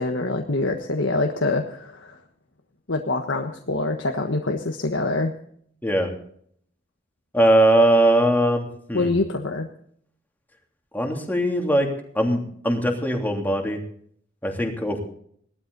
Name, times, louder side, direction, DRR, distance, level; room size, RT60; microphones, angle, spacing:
voice 1, 0.0-2.2 2.9-5.3 8.9-9.7, left 2 dB, 85° left, 3 dB, 1.4 m, -25 dB
voice 2, 7.3-9.1 10.9-11.9 12.1-13.8 14.4-15.0, right 1 dB, 10° left, 1 dB, 3.0 m, -20 dB
18.5 x 13.0 x 4.0 m, 0.63 s
head